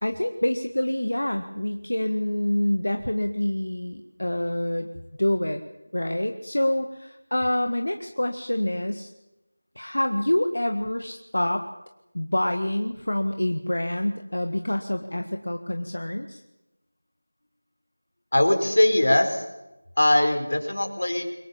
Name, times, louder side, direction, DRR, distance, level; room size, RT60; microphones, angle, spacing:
voice 1, 0.0-4.9 5.2-5.6 5.9-9.1 9.7-11.7 12.1-16.4, left 1 dB, 85° left, 6 dB, 1.8 m, -26 dB
voice 2, 18.3-19.4 20.0-21.2, left 1 dB, 60° left, 6 dB, 4.3 m, -21 dB
23.5 x 20.0 x 7.2 m, 0.96 s
figure-of-eight pair, 180°, 0 cm